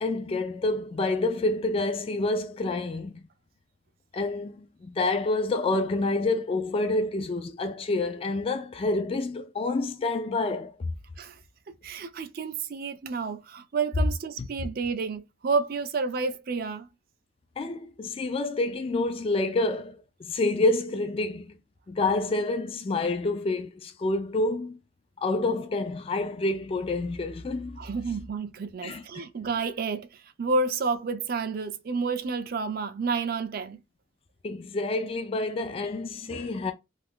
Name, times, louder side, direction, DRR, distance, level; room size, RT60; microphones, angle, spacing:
voice 1, 0.0-3.2 4.1-10.7 14.4-14.5 17.6-21.5 21.9-24.8 25.2-27.8 28.8-29.2 34.4-36.7, left 2 dB, 30° left, 0.3 m, -28 dB
voice 2, 11.7-16.9 27.8-33.8, right 4 dB, 50° right, 0.4 m, -30 dB
2.5 x 2.4 x 3.6 m
head